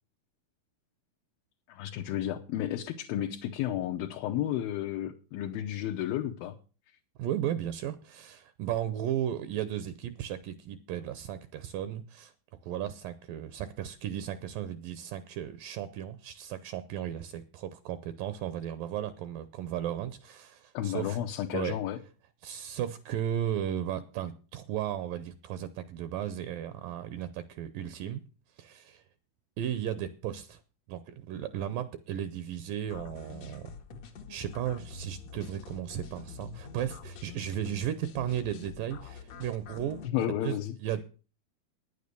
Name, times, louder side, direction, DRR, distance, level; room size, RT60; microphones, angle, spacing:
voice 1, 1.7-6.6 20.7-22.0 40.1-40.7, left 12 dB, 75° left, 1 dB, 2.6 m, -32 dB
voice 2, 7.2-12.3 12.6-21.2 21.5-21.8 22.4-28.2 28.6-29.1 29.6-30.6 30.9-33.7 34.3-41.0, right 10 dB, 75° right, 13 dB, 2.2 m, -35 dB
sound 1, 32.9-40.1, left 5 dB, 55° left, 2.1 m, -46 dB
10.0 x 9.6 x 6.8 m, 0.36 s
omnidirectional pair, 4.4 m